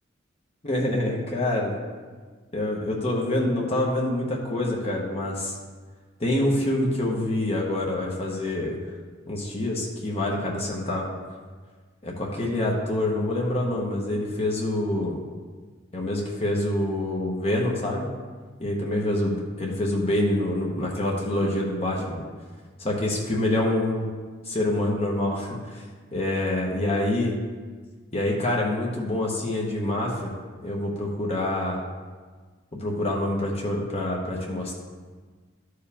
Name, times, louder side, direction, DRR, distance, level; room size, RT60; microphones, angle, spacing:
voice 1, 0.6-1.7 2.5-5.5 6.2-8.8 9.3-11.0 12.0-15.2 15.9-18.0 18.6-22.2 22.8-24.1 24.4-25.8 26.1-27.4 28.1-30.3 30.6-31.8 32.7-34.8, left 1 dB, 30° left, -2 dB, 1.1 m, -26 dB
13.0 x 4.8 x 3.5 m, 1.5 s
head